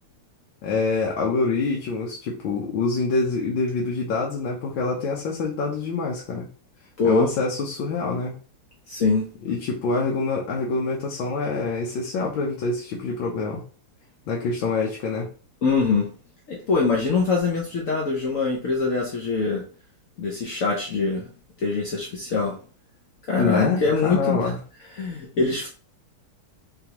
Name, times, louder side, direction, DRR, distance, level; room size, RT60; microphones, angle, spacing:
voice 1, 0.6-6.5 7.0-8.4 9.4-13.6 14.3-15.3 23.4-24.6, left 4 dB, 70° left, 1.4 m, -26 dB
voice 2, 7.0-7.4 8.9-9.3 15.6-16.1 16.5-19.6 20.2-21.3 21.6-22.6 23.3-24.5 25.0-25.7, left 4 dB, 90° left, 0.7 m, -23 dB
3.9 x 3.4 x 2.9 m
omnidirectional pair, 2.4 m